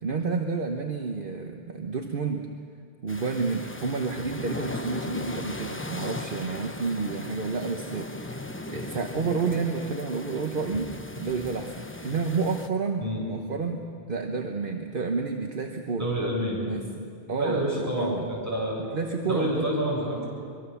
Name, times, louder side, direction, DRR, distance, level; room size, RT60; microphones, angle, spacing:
voice 1, 0.0-2.5 3.0-16.1 16.7-18.3 18.9-19.7, right 4 dB, 55° right, 4 dB, 1.3 m, -30 dB
sound 1, 3.1-12.7, left 2 dB, 15° left, 0.8 m, -37 dB
voice 2, 16.0-16.6 17.4-18.8 19.3-20.3, equal, 15° right, -5 dB, 7.5 m, -28 dB
23.5 x 23.5 x 7.0 m, 2.3 s
omnidirectional pair, 1.1 m